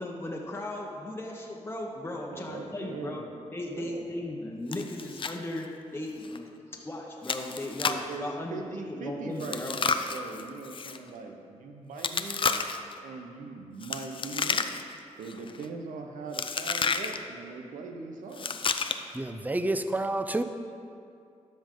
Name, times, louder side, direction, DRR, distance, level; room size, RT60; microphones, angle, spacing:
voice 1, 0.0-3.2 3.5-9.8, left 1 dB, 20° left, -1 dB, 0.9 m, -37 dB
voice 2, 2.3-3.3 3.7-4.1 7.8-12.7 13.0-14.7 15.2-18.6, right 4 dB, 85° right, 3 dB, 0.7 m, -40 dB
Chewing mastication, 4.7-5.4 5.6-5.7 6.2-6.4 7.2-8.1 9.4-11.0 12.0-12.9 13.8-15.0 15.3-15.6 16.3-17.2 18.3-19.2, left 5 dB, 40° left, 0.5 m, -31 dB
voice 3, 19.1-20.4, right 2 dB, 15° right, 9 dB, 0.5 m, -29 dB
12.5 x 5.3 x 3.7 m, 2.5 s
cardioid pair, 70°, 13 cm